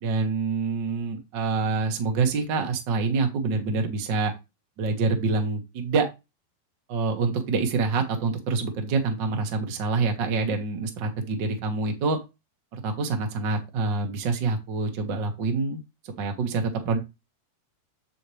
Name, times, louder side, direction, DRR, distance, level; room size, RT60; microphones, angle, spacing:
voice 1, 0.0-4.3 4.8-6.1 6.9-12.2 12.7-17.0, right 4 dB, 90° right, 4 dB, 1.0 m, -26 dB
8.8 x 5.7 x 3.3 m, 0.23 s
omnidirectional pair, 5.1 m